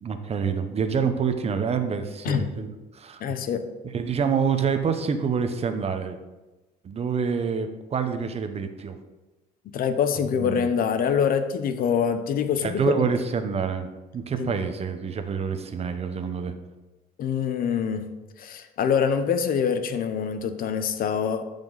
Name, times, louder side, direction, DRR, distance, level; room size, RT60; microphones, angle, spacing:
voice 1, 0.0-2.7 2.9-3.2 3.9-6.2 6.8-9.0 10.3-10.7 12.6-16.5, right 6 dB, 40° right, 8 dB, 0.9 m, -27 dB
voice 2, 3.2-3.7 9.7-12.9 14.4-14.5 17.2-18.1 18.4-21.4, left 7 dB, 60° left, 10 dB, 0.8 m, -25 dB
13.0 x 5.3 x 4.0 m, 1.1 s
cardioid pair, 110°, 17 cm